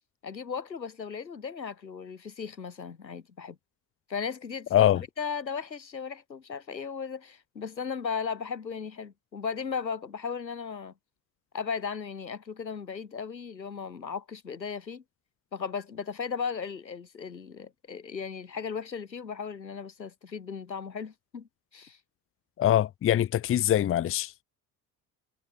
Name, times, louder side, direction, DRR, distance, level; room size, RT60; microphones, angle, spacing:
voice 1, 0.2-3.6 4.1-10.9 11.5-15.0 15.5-22.0, left 6 dB, 85° left, 2.3 m, -36 dB
voice 2, 22.6-24.4, left 11 dB, 25° left, 0.8 m, -23 dB
figure-of-eight pair, 60°, 50 cm